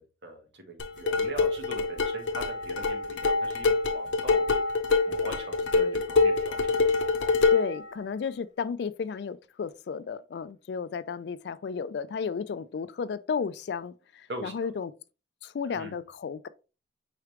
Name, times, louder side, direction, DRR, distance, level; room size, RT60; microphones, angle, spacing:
voice 1, 0.0-4.5 5.1-6.9 14.3-14.7 15.7-16.0, right 2 dB, 70° right, 1.1 m, -41 dB
sound 1, 0.8-7.8, left 4 dB, 90° left, 0.7 m, -25 dB
voice 2, 7.5-14.9 15.4-16.5, left 6 dB, 65° left, 0.3 m, -33 dB
4.8 x 3.3 x 3.1 m
head